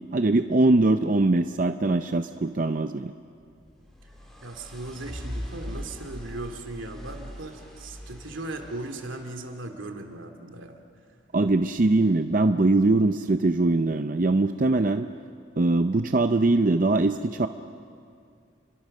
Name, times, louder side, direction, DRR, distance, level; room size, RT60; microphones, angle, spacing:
voice 1, 0.1-3.1 11.3-15.1 15.6-17.5, right 2 dB, 40° right, 8 dB, 0.5 m, -22 dB
sound 1, 3.4-9.5, equal, ahead, 3.9 m, -41 dB
voice 2, 4.4-10.8, right 2 dB, 80° right, 5 dB, 2.4 m, -38 dB
30.0 x 23.0 x 6.5 m, 2.3 s
head